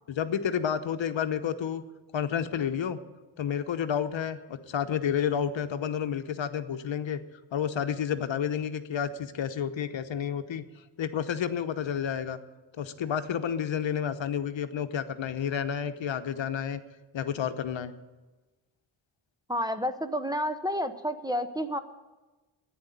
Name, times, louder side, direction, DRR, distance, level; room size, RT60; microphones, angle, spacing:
voice 1, 0.1-1.8 2.1-3.0 3.4-7.2 7.5-10.6 11.0-12.4 12.8-16.8 17.1-17.9, left 8 dB, 65° left, 9 dB, 0.9 m, -30 dB
voice 2, 19.5-21.8, equal, 10° right, 9 dB, 0.8 m, -30 dB
10.5 x 9.3 x 9.3 m, 1.2 s
cardioid pair, 75°, 48 cm